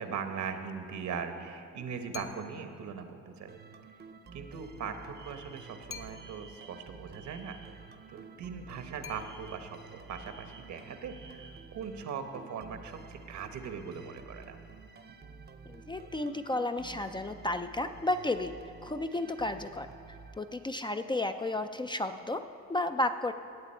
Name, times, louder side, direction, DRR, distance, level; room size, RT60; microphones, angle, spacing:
voice 1, 0.0-3.5 4.3-7.6 8.1-14.8, right 6 dB, 70° right, 7 dB, 1.1 m, -40 dB
sound 1, 2.1-2.8 5.9-6.6 9.0-9.8, left 7 dB, 45° left, 0.7 m, -47 dB
sound 2, 3.5-21.0, right 4 dB, 35° right, 0.6 m, -51 dB
Alarm, 5.1-7.9 9.1-11.8, right 5 dB, 85° right, 1.8 m, -55 dB
voice 2, 15.7-18.5 18.8-19.9 20.4-22.4 22.7-23.3, left 2 dB, 15° left, 8 dB, 0.4 m, -32 dB
16.5 x 8.1 x 4.4 m, 2.5 s
cardioid pair, 90°, 30 cm